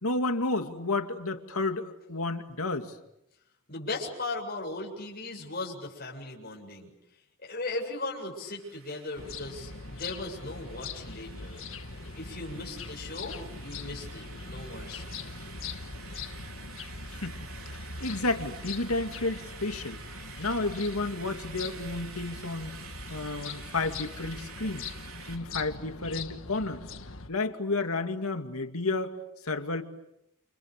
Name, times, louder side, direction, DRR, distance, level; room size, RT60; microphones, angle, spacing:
voice 1, 0.0-3.0 17.1-17.4 18.0-20.0 20.4-22.8 23.1-24.9 25.3-26.8 27.3-29.2 29.4-29.8, left 2 dB, 90° left, 6 dB, 2.5 m, -31 dB
voice 2, 3.7-6.9 7.4-11.6 12.1-15.0, left 2 dB, 45° left, -2 dB, 7.7 m, -38 dB
sound 1, 8.4-25.4, right 6 dB, 80° right, 4.1 m, -49 dB
sound 2, 9.2-27.3, left 4 dB, 65° left, 1.6 m, -42 dB
30.0 x 29.0 x 6.8 m, 0.81 s
head